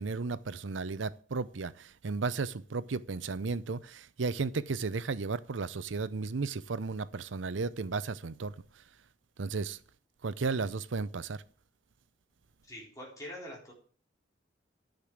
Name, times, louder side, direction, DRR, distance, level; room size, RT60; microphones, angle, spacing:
voice 1, 0.0-8.5 9.4-9.8 10.2-11.4, right 4 dB, 85° right, 0.6 m, -34 dB
voice 2, 12.7-13.7, equal, 20° left, 3.9 m, -44 dB
10.5 x 6.7 x 7.3 m
head